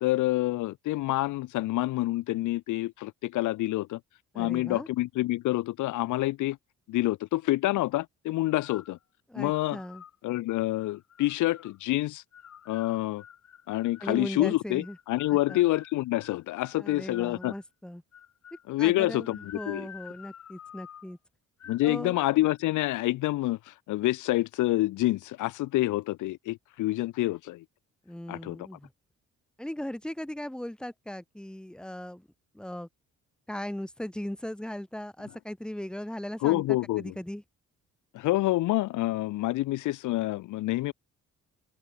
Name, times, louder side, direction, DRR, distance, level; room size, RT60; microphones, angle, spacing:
voice 1, 0.0-4.0 4.3-6.6 6.9-9.0 9.4-9.8 10.2-12.2 12.7-13.2 13.7-17.5 18.7-19.9 21.7-27.6 28.3-28.7 36.4-37.1 38.1-40.9, left 17 dB, 85° left, 0.8 m, -27 dB
voice 2, 4.3-4.9 9.3-10.0 14.0-15.0 15.3-15.7 16.7-18.0 18.8-21.2 21.8-22.2 28.1-28.9 29.6-32.3 32.5-32.9 33.5-36.6 37.0-37.4, left 1 dB, 5° left, 1.7 m, -38 dB
sound 1, 8.6-9.0 9.5-10.2 10.8-11.8 12.3-14.2 14.8-17.6 18.1-18.7 19.2-21.1 21.6-21.9 22.1-22.6, left 9 dB, 60° left, 6.3 m, -49 dB
open air
cardioid pair, 90°, 30 cm